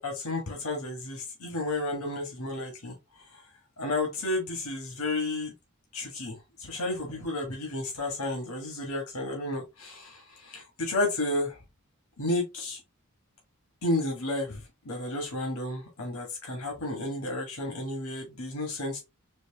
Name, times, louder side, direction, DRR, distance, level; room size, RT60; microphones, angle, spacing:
voice 1, 0.0-3.5 3.8-5.5 5.9-11.6 12.2-12.8 13.8-19.0, left 2 dB, 85° left, 1.5 m, -32 dB
4.5 x 2.6 x 2.8 m
head